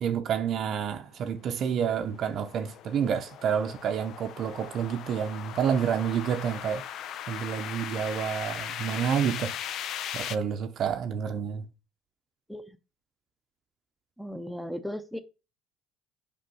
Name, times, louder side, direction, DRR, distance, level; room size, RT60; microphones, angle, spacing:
voice 1, 0.0-6.9 7.3-9.6 10.1-11.7, right 8 dB, 55° right, 0.7 m, -29 dB
sound 1, 1.3-10.4, left 10 dB, 60° left, 0.5 m, -39 dB
voice 2, 14.2-15.2, equal, ahead, 0.8 m, -36 dB
5.3 x 5.2 x 5.4 m
hypercardioid pair, 65°, 0 cm